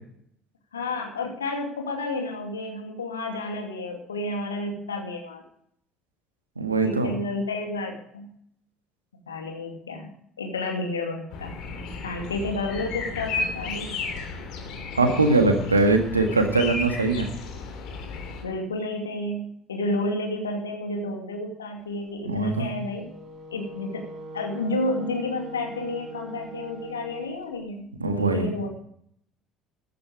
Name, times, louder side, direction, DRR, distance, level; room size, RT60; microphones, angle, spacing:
voice 1, 0.7-5.4 6.8-8.3 9.3-10.1 10.4-11.5 12.0-14.0 18.4-23.1 23.5-24.0 24.3-27.9 28.2-28.7, left 2 dB, 80° left, 3 dB, 2.4 m, -31 dB
voice 2, 6.6-7.1 15.0-17.3 22.3-22.7 28.0-28.5, right 3 dB, 85° right, 5 dB, 1.8 m, -21 dB
sound 1, 11.3-18.4, left 4 dB, 55° left, 3.1 m, -34 dB
Wind instrument woodwind instrument, 22.9-27.4, right 2 dB, 40° right, 4.9 m, -41 dB
14.5 x 11.5 x 4.9 m, 0.68 s
figure-of-eight pair, 55°, 0 cm